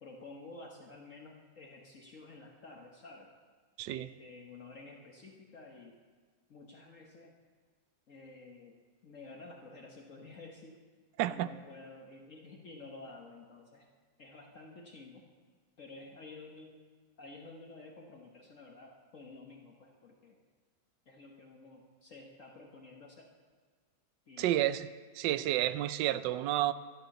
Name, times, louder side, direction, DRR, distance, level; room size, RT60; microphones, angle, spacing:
voice 1, 0.0-3.3 3.9-6.0 6.5-7.3 8.1-10.8 11.2-13.9 14.2-15.2 15.8-16.8 17.2-20.4 21.1-23.3 24.3-24.6, left 3 dB, 50° left, 0 dB, 1.4 m, -51 dB
voice 2, 24.4-24.9 25.1-26.7, right 13 dB, 80° right, 14 dB, 1.2 m, -30 dB
12.5 x 12.0 x 7.0 m, 1.5 s
omnidirectional pair, 1.9 m